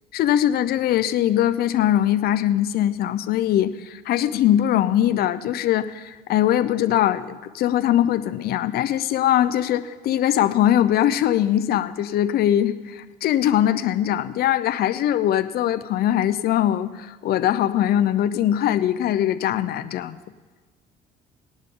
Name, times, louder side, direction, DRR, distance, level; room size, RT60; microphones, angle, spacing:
voice 1, 0.1-20.2, left 11 dB, 65° left, 13 dB, 0.6 m, -21 dB
19.0 x 11.0 x 3.7 m, 1.3 s
cardioid pair, 110°, 17 cm